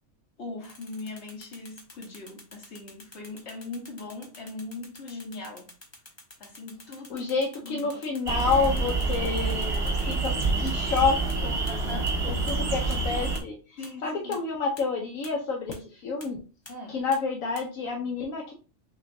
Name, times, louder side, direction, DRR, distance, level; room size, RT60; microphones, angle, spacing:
voice 1, 0.4-5.7 6.4-7.3 7.6-7.9 10.5-10.8 11.6-12.2 13.8-14.4 16.7-17.0, left 2 dB, 55° left, 1.5 m, -40 dB
sound 1, 0.6-11.0 11.3-11.4 11.7-11.8 12.1-12.2 12.5-12.6 12.9-13.0 13.3-13.4 13.8-13.9 14.3-14.4 14.8-14.9 15.2-15.3 15.7-15.8 16.2-16.3 16.7-16.8 17.1-17.2 17.6-17.7, left 2 dB, 25° left, 0.8 m, -47 dB
voice 2, 7.1-10.3 10.6-16.4 16.9-18.5, left 4 dB, 80° left, 1.2 m, -29 dB
sound 2, 8.3-13.4, right 3 dB, 25° right, 1.1 m, -27 dB
5.9 x 3.0 x 2.7 m
omnidirectional pair, 1.4 m